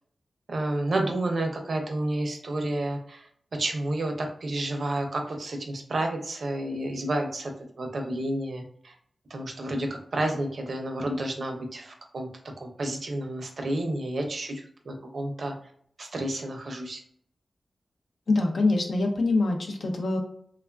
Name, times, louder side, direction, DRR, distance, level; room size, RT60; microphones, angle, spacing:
voice 1, 0.5-3.3 3.5-8.9 9.3-15.5 16.0-17.0, right 1 dB, 60° right, 3 dB, 0.5 m, -30 dB
voice 2, 18.3-20.2, left 2 dB, 75° left, 2 dB, 0.6 m, -24 dB
3.3 x 2.3 x 2.3 m, 0.63 s
wide cardioid pair, 125°, 0 cm